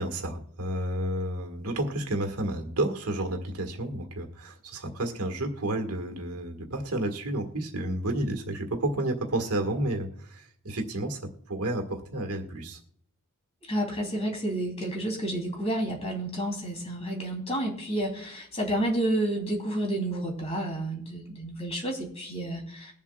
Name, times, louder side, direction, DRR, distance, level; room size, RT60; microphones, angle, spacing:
voice 1, 0.0-12.8, right 1 dB, 75° right, 5 dB, 1.6 m, -31 dB
voice 2, 13.7-22.9, right 1 dB, 30° left, 0 dB, 3.0 m, -30 dB
21.5 x 7.3 x 2.3 m, 0.65 s
head